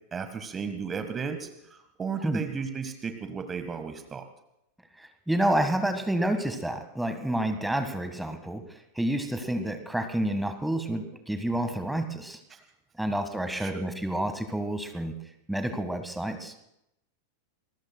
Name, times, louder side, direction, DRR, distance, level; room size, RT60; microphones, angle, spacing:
voice 1, 0.1-4.3 12.5-12.6 13.6-13.7, right 6 dB, 20° right, 8 dB, 1.5 m, -34 dB
voice 2, 5.0-12.4 13.0-15.1 15.5-16.6, right 1 dB, 5° right, 7 dB, 1.7 m, -29 dB
26.5 x 21.5 x 2.3 m, 0.81 s
figure-of-eight pair, 90°, 0 cm